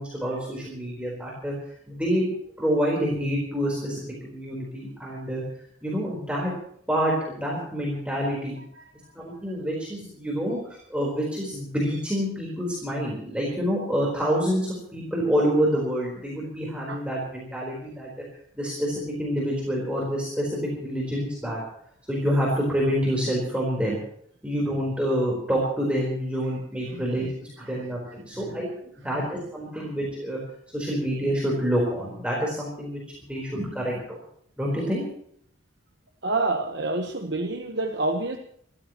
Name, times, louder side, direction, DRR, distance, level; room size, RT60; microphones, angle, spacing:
voice 1, 0.0-1.6 1.9-2.3 2.6-5.4 5.8-6.5 6.9-8.6 9.1-18.1 18.6-21.6 22.1-24.0 24.4-28.7 29.0-30.4 30.7-34.2 34.6-35.0, equal, 5° right, -4 dB, 4.1 m, -27 dB
voice 2, 36.2-38.4, right 2 dB, 55° right, 3 dB, 1.2 m, -27 dB
28.0 x 14.0 x 3.0 m, 0.67 s
head